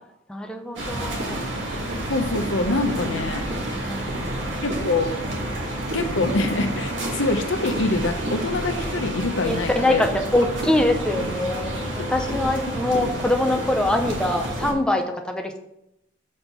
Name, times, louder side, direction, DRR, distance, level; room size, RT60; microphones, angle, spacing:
voice 1, 0.3-1.5 3.9-4.6 9.4-15.6, left 1 dB, 5° left, 3 dB, 0.5 m, -24 dB
sound 1, 0.8-14.7, right 1 dB, 70° right, 2.0 m, -29 dB
voice 2, 2.1-3.4 4.6-5.1 5.9-10.0 11.9-12.4, left 2 dB, 80° left, 6 dB, 0.8 m, -25 dB
6.3 x 4.3 x 5.4 m, 0.84 s
head